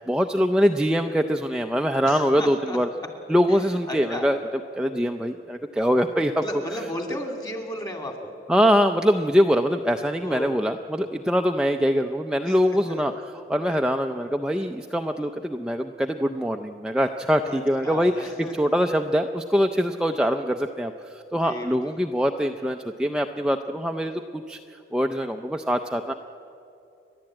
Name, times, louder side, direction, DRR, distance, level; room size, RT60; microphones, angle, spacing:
voice 1, 0.0-2.9 3.3-4.4 4.8-6.4 8.5-13.1 13.5-26.1, equal, 5° right, 4 dB, 0.5 m, -23 dB
voice 2, 2.0-2.8 3.9-4.3 6.4-8.3 10.2-10.6 12.5-12.6 12.9-13.0 17.4-18.5 21.4-21.7, left 1 dB, 20° left, 4 dB, 2.5 m, -34 dB
30.0 x 11.5 x 8.8 m, 2.7 s
head